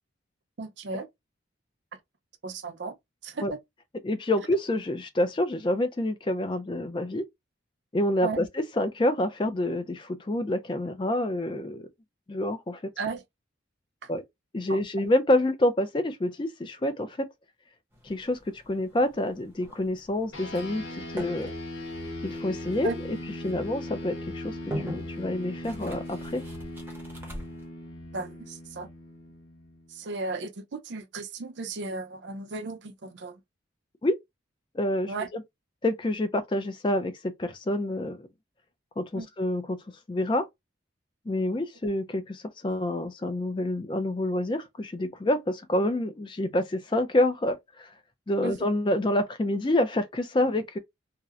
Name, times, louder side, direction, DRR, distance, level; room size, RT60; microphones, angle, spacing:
voice 1, 0.6-1.1 2.4-3.0 3.2-3.6 8.2-8.4 13.0-13.2 14.0-14.1 14.7-14.8 22.8-23.0 28.1-28.9 29.9-33.4 35.1-35.3 39.1-39.3 48.4-48.5, right 3 dB, 65° right, 0.5 m, -35 dB
voice 2, 4.0-7.2 7.9-8.5 8.8-11.9 12.3-12.8 14.1-14.2 14.5-17.3 18.0-18.4 18.7-20.8 21.1-21.5 22.2-23.2 23.4-24.6 24.8-26.4 34.0-34.2 34.7-35.4 35.8-38.3 39.0-39.8 40.1-40.4 41.3-47.9 48.3-50.8, left 1 dB, 25° left, 0.4 m, -27 dB
sound 1, 17.9-27.7, equal, 10° right, 0.7 m, -43 dB
sound 2, 20.3-30.1, left 1 dB, 90° left, 1.0 m, -39 dB
2.7 x 2.0 x 2.4 m
head